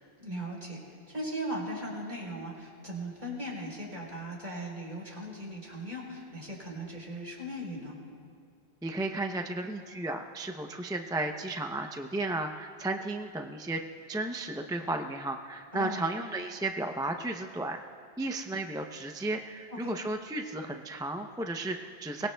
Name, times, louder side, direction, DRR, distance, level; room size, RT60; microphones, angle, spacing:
voice 1, 0.2-8.0 15.7-16.0 19.7-20.0, equal, 45° right, -3 dB, 4.0 m, -38 dB
voice 2, 8.8-13.8 14.1-17.8 18.2-22.3, right 2 dB, 5° right, 4 dB, 0.4 m, -34 dB
23.5 x 19.5 x 2.2 m, 2.3 s
omnidirectional pair, 1.1 m